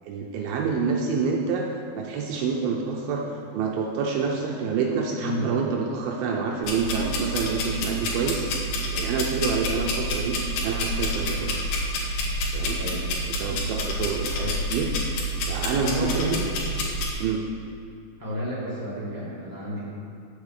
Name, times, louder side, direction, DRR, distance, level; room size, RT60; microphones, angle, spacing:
voice 1, 0.0-1.7 1.9-8.5 8.9-10.4 10.6-11.7 12.5-12.8 13.3-14.9 15.5-16.4 17.2-17.4, right 5 dB, 80° right, 0 dB, 2.2 m, -27 dB
sound 1, 6.6-17.1, equal, 90° left, 3.7 m, -28 dB
voice 2, 12.7-13.1 15.6-16.5 18.2-19.9, equal, 10° right, -8 dB, 1.0 m, -31 dB
8.8 x 7.3 x 6.5 m, 2.4 s
omnidirectional pair, 4.8 m